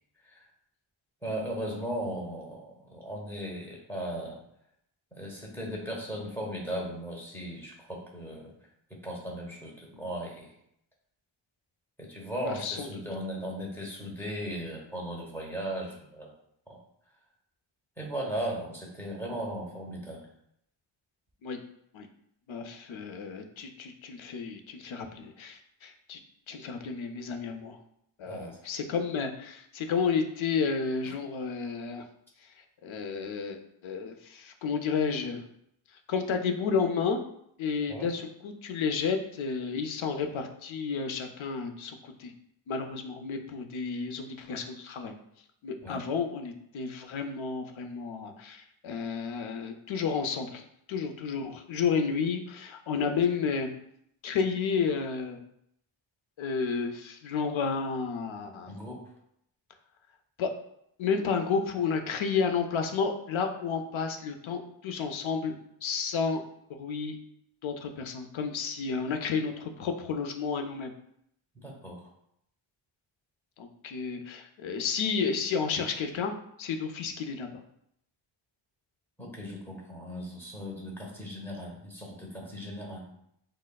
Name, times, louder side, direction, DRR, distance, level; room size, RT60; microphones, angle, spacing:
voice 1, 1.2-4.4 5.1-8.5 8.9-10.5 12.0-16.3 16.7-16.8 18.0-20.2 28.2-28.6 37.9-38.1 45.8-46.0 58.7-59.0 71.5-72.1 79.2-83.1, equal, 5° left, -3 dB, 0.9 m, -37 dB
voice 2, 12.4-12.9 21.4-21.6 21.9-22.1 22.5-26.2 26.5-27.8 28.2-32.0 32.8-35.4 36.1-37.2 37.6-42.3 42.7-45.1 45.6-53.7 54.2-55.4 56.4-58.7 60.4-60.5 61.0-65.5 65.8-66.4 66.7-67.2 67.6-70.9 73.6-76.3 76.6-77.5, left 5 dB, 75° left, 6 dB, 0.6 m, -31 dB
6.2 x 2.1 x 2.3 m, 0.73 s
wide cardioid pair, 130°, 48 cm